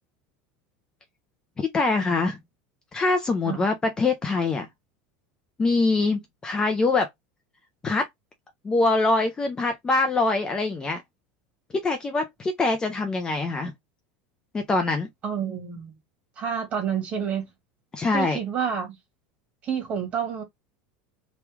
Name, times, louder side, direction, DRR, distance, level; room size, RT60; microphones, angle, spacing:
voice 1, 1.6-2.4 2.9-4.7 5.6-7.1 7.8-8.1 8.6-11.0 11.7-13.7 14.5-15.1 17.9-18.4, left 3 dB, 15° left, 0.5 m, -24 dB
voice 2, 15.2-16.0 16.4-17.5 18.1-19.0 19.6-20.4, right 7 dB, 30° right, 1.8 m, -29 dB
3.0 x 2.3 x 3.4 m
supercardioid pair, 155°, 5 cm